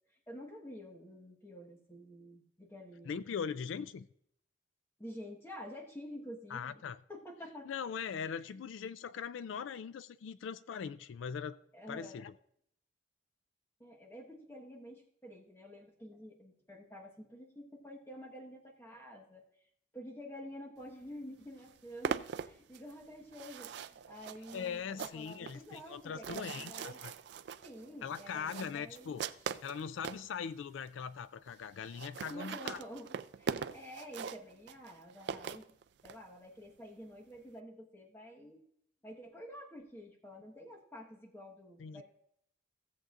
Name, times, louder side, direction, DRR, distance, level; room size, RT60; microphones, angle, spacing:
voice 1, 0.3-3.2 5.0-6.8 7.1-7.7 8.4-8.5 11.7-12.2 13.8-19.4 19.9-27.0 27.6-29.3 32.3-35.7 36.0-38.6 39.0-42.0, equal, 15° left, 1.3 m, -49 dB
voice 2, 3.1-4.1 6.5-7.0 7.6-11.6 11.9-12.3 24.5-27.1 28.0-29.2 29.6-32.8 41.8-42.0, left 7 dB, 85° left, 0.3 m, -41 dB
sound 1, 21.1-21.2 21.4-30.3 30.9-31.0 31.2-31.3 31.5-31.6 31.8-36.2, right 6 dB, 60° right, 0.3 m, -41 dB
16.0 x 7.7 x 2.5 m
head